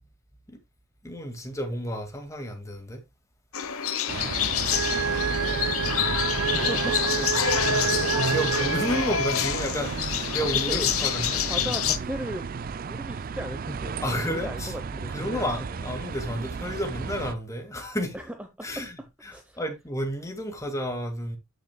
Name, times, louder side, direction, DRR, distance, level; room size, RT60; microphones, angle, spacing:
voice 1, 1.0-3.0 5.0-5.8 7.1-7.3 8.0-11.7 14.0-14.7 15.1-18.2 18.6-19.0 19.2-21.4, equal, 15° left, 2.0 m, -32 dB
sound 1, 3.5-12.0, left 9 dB, 80° left, 1.0 m, -27 dB
sound 2, 4.1-17.3, right 5 dB, 40° right, 0.4 m, -33 dB
sound 3, 4.7-9.6, right 7 dB, 85° right, 0.7 m, -29 dB
voice 2, 6.5-7.3 7.7-8.2 10.4-14.0 14.3-15.4 18.1-19.6, equal, 5° right, 0.9 m, -37 dB
13.5 x 6.5 x 2.2 m
head